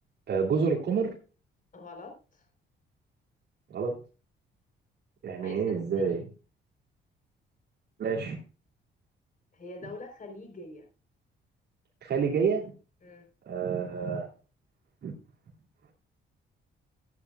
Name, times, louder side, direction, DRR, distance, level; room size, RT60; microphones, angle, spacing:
voice 1, 0.3-1.1 3.7-3.9 5.2-6.3 8.0-8.4 12.0-12.7 13.4-14.3 15.0-15.1, right 5 dB, 55° right, 3.1 m, -28 dB
voice 2, 1.7-2.5 5.4-6.2 9.5-10.9 13.0-13.3, left 2 dB, 40° left, 4.0 m, -45 dB
15.0 x 9.6 x 2.4 m
cardioid pair, 90°, 20 cm